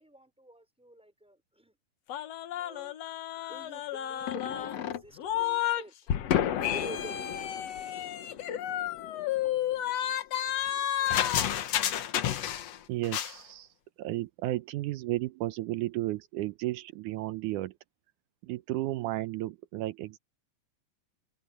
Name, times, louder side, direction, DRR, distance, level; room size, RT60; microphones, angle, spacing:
voice 1, 0.0-1.7 2.5-2.9 3.3-6.1 6.7-7.3, right 1 dB, ahead, 4.6 m, -48 dB
sound 1, 2.1-5.8 6.1-12.8 13.0-13.3, left 11 dB, 65° left, 2.1 m, -31 dB
voice 2, 12.9-13.7 14.0-17.7 18.4-20.2, right 16 dB, 85° right, 2.3 m, -33 dB
open air
omnidirectional pair, 3.5 m